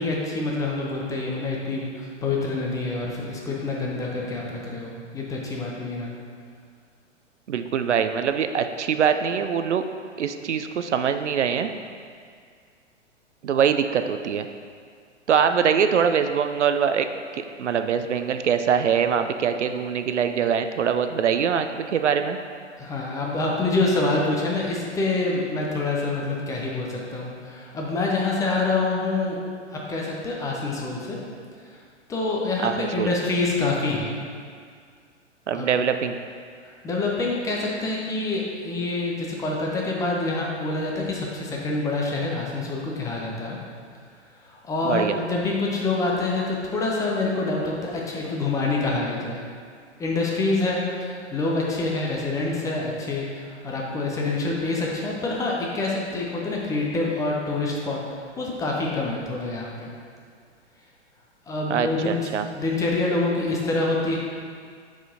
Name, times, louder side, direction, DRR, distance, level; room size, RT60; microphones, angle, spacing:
voice 1, 0.0-6.1 22.8-29.4 29.7-31.2 32.1-34.1 35.5-35.7 36.6-43.6 44.5-49.4 50.0-58.0 58.4-59.9 61.5-62.2 62.5-64.2, left 3 dB, 10° left, -3 dB, 0.6 m, -26 dB
voice 2, 7.5-9.8 10.2-11.7 13.4-14.5 15.3-17.1 17.3-22.4 32.6-33.1 35.5-36.2 44.8-45.2 61.7-62.5, right 7 dB, 75° right, 8 dB, 0.5 m, -23 dB
9.6 x 4.9 x 2.7 m, 2.1 s
figure-of-eight pair, 110°, 36 cm